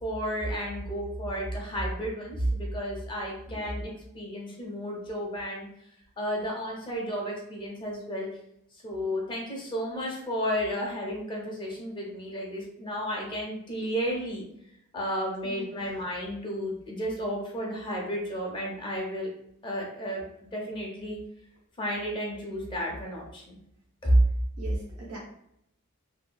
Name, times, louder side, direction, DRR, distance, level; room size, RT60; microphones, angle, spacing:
voice 1, 0.0-5.7 6.2-8.3 8.8-14.4 14.9-19.3 19.6-21.2 21.8-23.6 24.0-24.2, equal, 20° left, -2 dB, 0.5 m, -31 dB
voice 2, 15.4-15.9 24.6-25.2, right 2 dB, 85° right, -4 dB, 0.6 m, -42 dB
2.7 x 2.3 x 2.2 m, 0.76 s
head